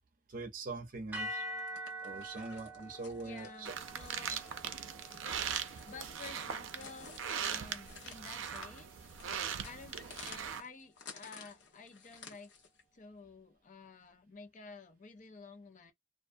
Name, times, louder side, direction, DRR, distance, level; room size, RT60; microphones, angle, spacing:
voice 1, 0.3-1.4 2.0-3.7 4.3-4.4, right 3 dB, 45° right, 0.6 m, -42 dB
sound 1, 1.1-9.4, right 1 dB, 10° right, 0.8 m, -47 dB
sound 2, 1.5-12.8, left 5 dB, 65° left, 0.9 m, -55 dB
voice 2, 3.2-4.4 5.6-9.0 9.6-12.5 12.9-15.9, left 4 dB, 40° left, 0.5 m, -52 dB
sound 3, 3.7-10.6, right 8 dB, 90° right, 0.4 m, -40 dB
2.5 x 2.2 x 2.5 m
head